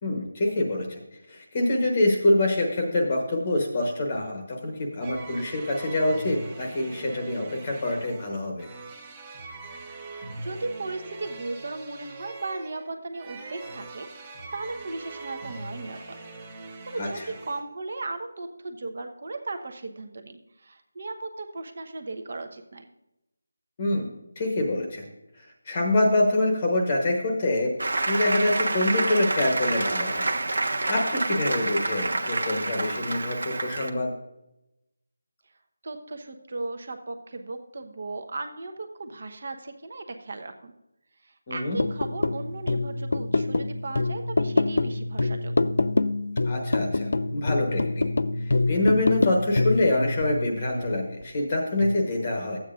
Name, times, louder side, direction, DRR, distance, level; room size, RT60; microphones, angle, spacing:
voice 1, 0.0-1.0 1.3-8.7 17.0-17.2 23.8-24.1 24.4-25.1 25.7-27.7 28.1-30.3 30.9-34.1 41.5-41.8 46.4-48.0 48.4-52.6, left 1 dB, 20° left, 1 dB, 1.1 m, -25 dB
sound 1, 5.0-17.6, right 3 dB, 15° right, 0.9 m, -42 dB
voice 2, 10.0-16.2 16.5-22.9 35.8-40.7 41.2-45.5, right 2 dB, 40° right, 6 dB, 1.0 m, -36 dB
Applause, 27.8-33.9, right 2 dB, 80° right, 1.3 m, -28 dB
sound 2, 41.8-51.2 51.8-52.0, left 3 dB, 50° left, 0.4 m, -26 dB
14.0 x 8.7 x 2.5 m, 0.89 s
figure-of-eight pair, 180°, 0 cm